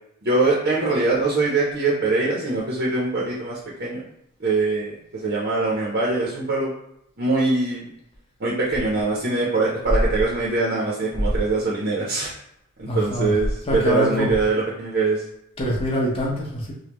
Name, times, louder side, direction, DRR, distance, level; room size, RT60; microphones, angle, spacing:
voice 1, 0.2-4.0 4.4-6.7 7.2-7.9 8.4-12.3 12.8-15.2, right 3 dB, 45° right, -4 dB, 0.7 m, -23 dB
voice 2, 12.9-13.4 13.7-14.3 15.6-16.7, equal, 25° left, -3 dB, 0.9 m, -24 dB
5.2 x 2.2 x 3.0 m, 0.78 s
head